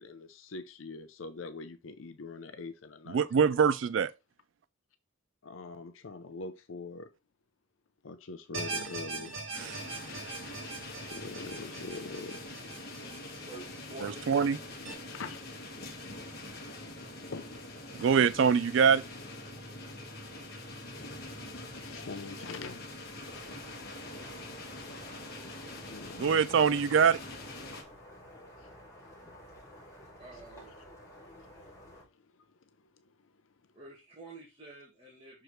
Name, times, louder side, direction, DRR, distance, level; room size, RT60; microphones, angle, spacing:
voice 1, 0.0-3.5 5.4-7.1 8.0-9.3 11.0-12.4 15.1-15.7 16.8-16.9 17.3-17.5 21.0-21.2 21.5-23.6 23.9-24.1 24.9-25.1 25.9-26.4 26.7-26.8 27.7-27.8 28.4-28.7 29.3-29.4 30.5-30.6 31.9-32.1 32.3-32.4 32.8-33.3, left 4 dB, 80° left, 0.6 m, -44 dB
voice 2, 3.1-4.1 9.6-9.8 14.0-14.6 17.9-19.0 26.2-27.2, right 6 dB, 70° right, 0.4 m, -24 dB
sound 1, 8.5-14.9, right 3 dB, 85° right, 1.9 m, -42 dB
sound 2, 9.5-27.8, left 2 dB, 55° left, 1.6 m, -44 dB
voice 3, 13.5-14.3 21.5-21.8 23.3-23.5 24.0-24.1 30.2-30.7 33.7-35.4, right 2 dB, 30° right, 1.8 m, -49 dB
sound 3, 23.2-32.0, equal, 15° left, 2.3 m, -52 dB
6.5 x 4.7 x 3.1 m
head